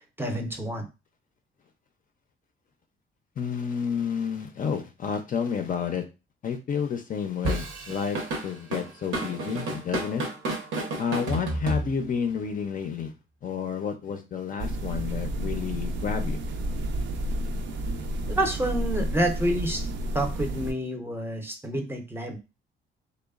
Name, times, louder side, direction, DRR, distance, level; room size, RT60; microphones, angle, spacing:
voice 1, 0.2-0.9 18.3-19.9 20.1-22.4, right 1 dB, 10° right, 3 dB, 0.6 m, -28 dB
voice 2, 3.4-6.0 6.4-10.2 11.0-13.1 13.4-16.4, left 7 dB, 45° left, 6 dB, 0.4 m, -30 dB
Drum kit / Drum, 7.4-12.3, right 2 dB, 90° right, 0.8 m, -31 dB
sound 1, 14.6-20.7, right 1 dB, 70° right, 0.4 m, -31 dB
2.9 x 2.0 x 2.3 m, 0.28 s
cardioid pair, 90°, 20 cm